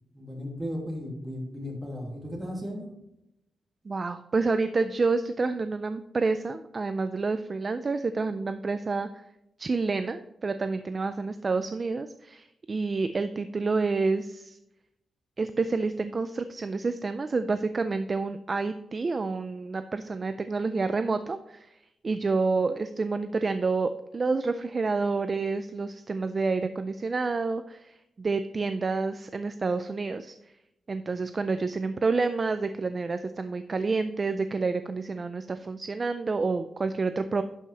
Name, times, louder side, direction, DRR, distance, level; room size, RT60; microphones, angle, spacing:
voice 1, 0.1-2.9, equal, 10° right, -2 dB, 2.5 m, -35 dB
voice 2, 3.9-9.1 9.6-14.6 15.4-21.7 22.0-30.4 30.9-37.4, right 4 dB, 30° right, 10 dB, 0.4 m, -28 dB
11.5 x 5.5 x 3.3 m, 0.85 s
wide cardioid pair, 150°, 0 cm